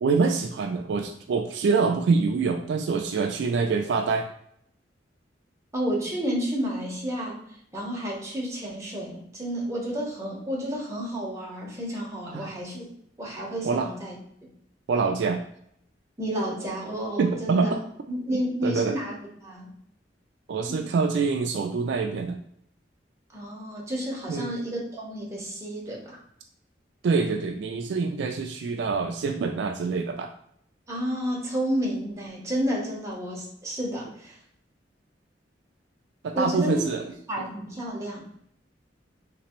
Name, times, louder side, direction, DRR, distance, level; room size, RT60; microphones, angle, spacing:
voice 1, 0.0-4.3 12.3-12.5 13.6-13.9 14.9-15.4 17.2-17.8 18.6-18.9 20.5-22.4 24.3-24.5 27.0-30.3 36.2-37.0, right 4 dB, 70° right, 5 dB, 0.3 m, -25 dB
voice 2, 5.7-7.4 7.7-12.9 13.2-14.2 16.2-17.7 18.1-19.1 19.4-19.7 20.7-20.8 23.3-26.2 30.9-34.4 36.3-36.9 37.3-38.3, equal, 15° right, -3 dB, 0.9 m, -31 dB
3.2 x 3.0 x 3.0 m, 0.68 s
head